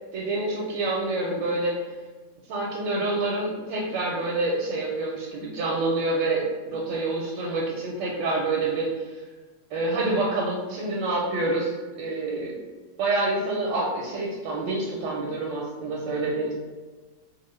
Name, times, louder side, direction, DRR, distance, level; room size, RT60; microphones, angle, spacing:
voice 1, 0.1-1.8 2.5-9.2 9.7-12.6 13.0-16.5, right 2 dB, 85° right, -3 dB, 1.3 m, -27 dB
3.0 x 2.3 x 3.1 m, 1.3 s
omnidirectional pair, 1.9 m